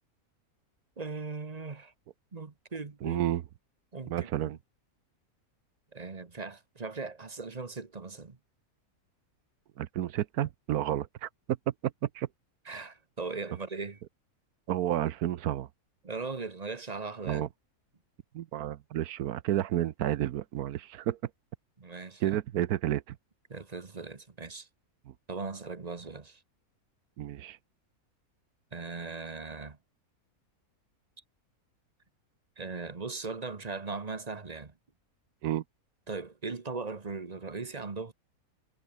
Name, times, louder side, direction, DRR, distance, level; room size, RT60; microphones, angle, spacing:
voice 1, 1.0-1.9 2.3-3.2 3.9-4.6 5.9-8.4 12.6-14.0 16.0-17.4 21.8-22.4 23.5-24.7 25.3-26.4 28.7-29.8 32.6-34.7 36.1-38.1, right 4 dB, 30° right, 1.2 m, -39 dB
voice 2, 3.0-3.4 4.1-4.6 9.8-11.3 11.7-12.3 14.7-15.7 17.2-17.5 18.3-21.2 22.2-23.2 27.2-27.6 35.4-35.6, right 12 dB, 85° right, 1.3 m, -31 dB
omnidirectional pair, 1.6 m